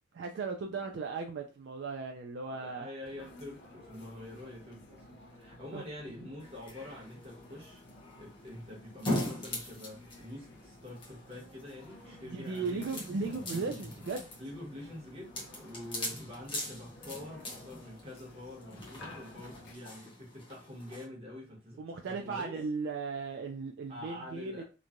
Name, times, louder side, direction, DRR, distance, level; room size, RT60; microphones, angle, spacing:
voice 1, 0.1-2.9 5.7-5.8 12.1-14.3 21.8-24.6, right 4 dB, 65° right, 3 dB, 0.3 m, -37 dB
voice 2, 2.4-7.8 8.2-13.0 14.4-22.5 23.9-24.6, left 1 dB, 30° right, -3 dB, 1.1 m, -46 dB
sound 1, 3.0-19.7, left 1 dB, 60° left, 0.5 m, -54 dB
sound 2, 6.4-21.1, left 1 dB, 25° left, 0.8 m, -42 dB
3.0 x 2.2 x 2.5 m, 0.32 s
head